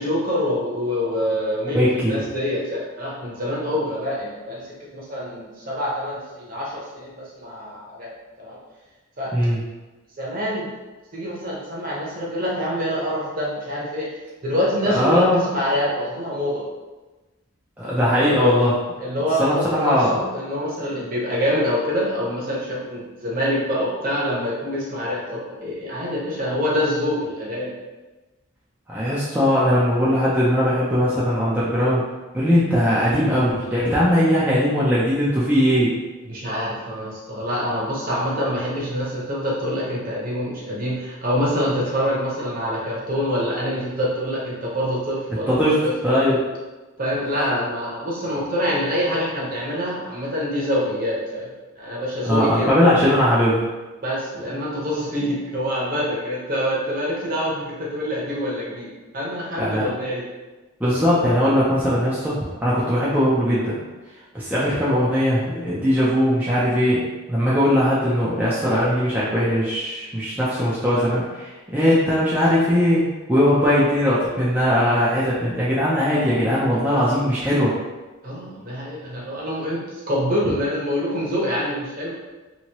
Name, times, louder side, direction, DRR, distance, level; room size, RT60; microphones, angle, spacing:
voice 1, 0.0-4.6 4.9-8.1 8.4-8.6 9.2-9.3 10.2-10.7 11.1-14.1 14.4-16.6 19.0-27.7 36.3-45.9 47.0-51.5 51.8-52.7 54.0-60.2 78.2-82.1, equal, 40° right, -5 dB, 0.9 m, -25 dB
voice 2, 1.7-2.1 9.3-9.6 14.9-15.4 17.8-18.8 19.4-20.2 28.9-32.0 32.3-35.9 45.5-45.7 46.0-46.4 52.2-53.7 59.6-59.8 60.8-63.7 64.3-67.0 67.3-77.7, equal, 5° right, -9 dB, 0.5 m, -19 dB
2.9 x 2.7 x 2.9 m, 1.2 s
head